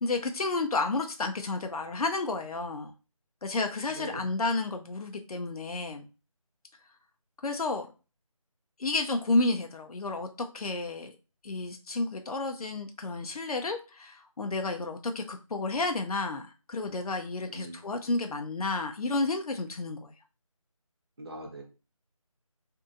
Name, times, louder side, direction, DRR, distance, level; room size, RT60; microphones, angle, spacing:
voice 1, 0.0-2.9 3.4-6.1 7.4-7.9 8.8-10.3 10.5-11.1 11.4-20.1, left 3 dB, 90° left, 5 dB, 0.5 m, -31 dB
voice 2, 3.9-4.2 17.5-17.8 21.2-21.6, right 1 dB, 45° right, 1 dB, 0.8 m, -41 dB
2.7 x 2.6 x 2.3 m, 0.32 s
figure-of-eight pair, 170°, 18 cm